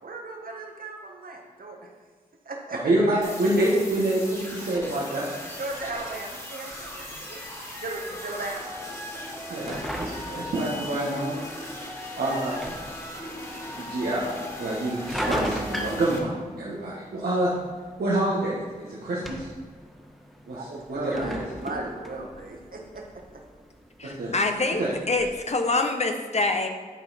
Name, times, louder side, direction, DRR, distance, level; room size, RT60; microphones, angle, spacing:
voice 1, 0.0-1.9 2.4-2.8 3.2-3.3 5.6-7.4 7.8-8.8 9.1-9.2 9.5-9.6 10.4-10.5 20.5-23.4, right 2 dB, 65° right, 1 dB, 1.4 m, -36 dB
voice 2, 2.8-5.3 9.5-11.4 12.2-12.5 13.8-17.5 18.0-19.5 20.5-20.6 20.9-21.4 24.0-24.3 24.8-24.9, right 1 dB, 85° right, -7 dB, 1.3 m, -27 dB
sound 1, 3.2-16.2, left 1 dB, 20° left, 2.0 m, -38 dB
sound 2, 6.7-25.3, equal, ahead, 1.3 m, -39 dB
voice 3, 24.0-26.7, left 3 dB, 45° left, 5 dB, 0.8 m, -25 dB
10.5 x 4.3 x 4.1 m, 1.5 s
cardioid pair, 40°, 16 cm